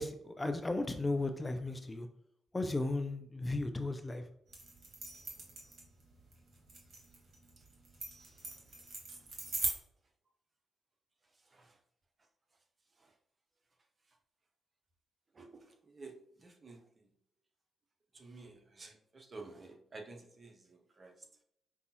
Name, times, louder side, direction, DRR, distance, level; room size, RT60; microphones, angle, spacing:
voice 1, 0.0-2.1 2.5-4.3, left 2 dB, 20° left, 7 dB, 0.4 m, -35 dB
sound 1, 4.5-9.7, right 3 dB, 50° right, 1.2 m, -41 dB
voice 2, 15.3-17.1 18.1-21.3, right 3 dB, 35° right, 3 dB, 0.8 m, -52 dB
5.1 x 2.3 x 2.8 m, 0.70 s
hypercardioid pair, 40°, 0 cm